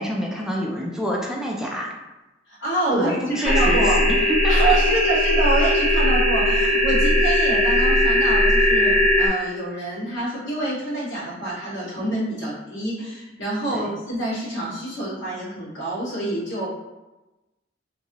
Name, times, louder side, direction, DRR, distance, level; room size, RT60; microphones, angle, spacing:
voice 1, 0.0-1.9 2.9-3.9 4.4-4.7 13.7-13.9, equal, 5° right, -2 dB, 0.4 m, -27 dB
voice 2, 2.5-4.0 4.5-16.7, right 2 dB, 85° left, -8 dB, 1.5 m, -27 dB
sound 1, 3.4-9.3, left 1 dB, 40° left, 0.8 m, -18 dB
3.0 x 2.7 x 2.8 m, 1.0 s
head